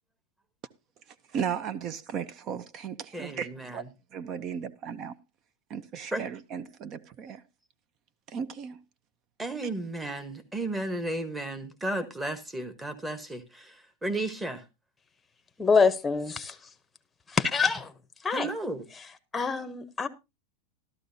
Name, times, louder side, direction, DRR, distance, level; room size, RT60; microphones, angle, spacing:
voice 1, 1.3-3.8 4.1-5.2 5.7-7.4 8.3-8.8, right 7 dB, 35° right, 0.6 m, -35 dB
voice 2, 3.1-3.9 6.1-6.3 9.4-14.6 18.3-18.8, right 2 dB, 10° right, 1.2 m, -34 dB
voice 3, 15.6-16.6 17.3-17.9 18.2-18.5 19.3-20.1, left 5 dB, 10° left, 0.9 m, -25 dB
13.5 x 12.5 x 2.7 m
supercardioid pair, 145°, 0 cm